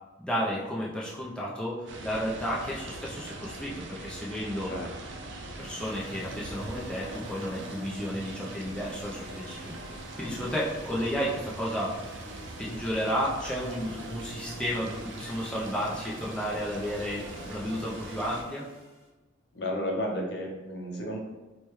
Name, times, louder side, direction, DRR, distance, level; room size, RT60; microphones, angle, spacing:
voice 1, 0.2-4.7 5.6-9.8 10.2-12.0 12.6-18.6, equal, 5° left, -6 dB, 0.5 m, -32 dB
sound 1, 1.9-18.4, right 2 dB, 65° right, 0.4 m, -42 dB
sound 2, 5.6-19.1, equal, 35° right, 1.3 m, -47 dB
voice 2, 19.5-21.2, left 1 dB, 55° left, 0 dB, 0.6 m, -33 dB
4.7 x 2.3 x 3.0 m, 1.1 s
head